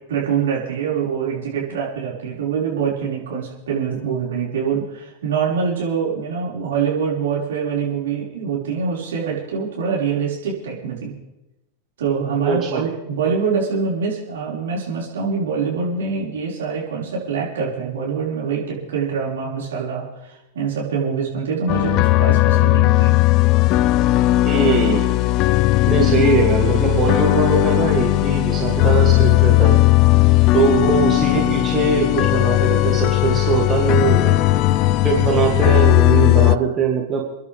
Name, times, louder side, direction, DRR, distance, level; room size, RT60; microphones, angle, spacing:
voice 1, 0.1-11.1 12.0-23.2, right 6 dB, 60° right, -4 dB, 5.6 m, -24 dB
voice 2, 12.4-12.8 24.5-25.1 25.9-29.8 30.5-34.3 35.0-37.2, right 5 dB, 25° right, -1 dB, 2.7 m, -21 dB
sound 1, 21.7-36.6, left 17 dB, 40° left, 0.4 m, -16 dB
29.5 x 11.0 x 3.6 m, 0.98 s
figure-of-eight pair, 90°, 0 cm